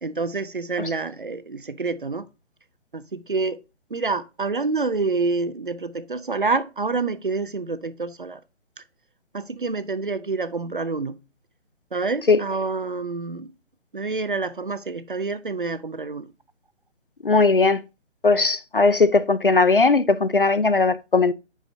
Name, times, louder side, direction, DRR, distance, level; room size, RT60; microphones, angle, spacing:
voice 1, 0.0-2.3 2.9-3.6 3.9-8.4 9.3-11.2 11.9-13.5 13.9-16.3, right 3 dB, 45° right, 0.5 m, -27 dB
voice 2, 17.2-17.8 18.2-21.3, left 3 dB, 50° left, 0.4 m, -18 dB
8.1 x 5.8 x 2.6 m
hypercardioid pair, 175°, 37 cm